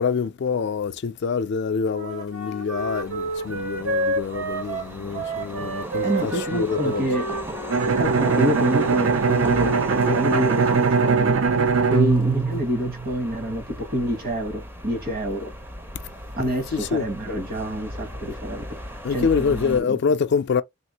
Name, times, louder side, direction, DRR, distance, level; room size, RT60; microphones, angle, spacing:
voice 1, 0.0-7.1 16.4-17.1 19.0-20.6, left 5 dB, 55° left, 0.4 m, -26 dB
Wind instrument woodwind instrument, 1.9-8.5, right 2 dB, 85° right, 1.5 m, -30 dB
sound 1, 2.8-19.8, right 1 dB, 10° right, 0.6 m, -36 dB
voice 2, 6.0-7.4 7.8-9.7 10.1-11.4 11.9-15.5 16.4-18.7 19.1-20.0, equal, 45° right, 1.3 m, -27 dB
Bowed string instrument, 7.7-13.4, right 4 dB, 65° right, 0.5 m, -21 dB
3.5 x 2.5 x 2.8 m
head